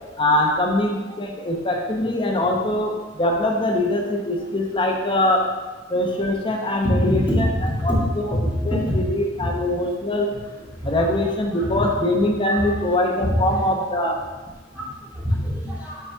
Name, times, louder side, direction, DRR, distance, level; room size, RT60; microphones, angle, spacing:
voice 1, 0.2-2.9 3.2-5.4 5.9-7.5 7.8-8.4 8.6-10.3 10.8-14.2, left 1 dB, 30° left, 0 dB, 0.8 m, -22 dB
voice 2, 6.8-8.0 8.3-8.8 10.8-11.9 12.4-12.7 13.3-13.6 14.7-14.8 15.2-16.0, equal, 10° right, -7 dB, 2.1 m, -24 dB
10.0 x 4.1 x 3.6 m, 1.2 s
head